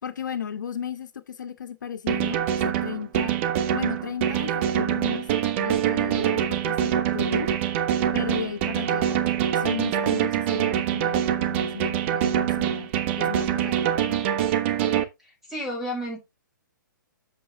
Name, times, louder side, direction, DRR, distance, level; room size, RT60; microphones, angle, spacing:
voice 1, 0.0-3.4 3.7-7.5 8.1-9.3 9.5-12.9 13.2-14.2, left 7 dB, 65° left, 1.8 m, -35 dB
sound 1, 2.1-15.0, right 10 dB, 35° right, 1.3 m, -24 dB
voice 2, 15.2-16.2, equal, 5° right, 5.7 m, -32 dB
7.7 x 7.6 x 3.4 m
figure-of-eight pair, 130°, 11 cm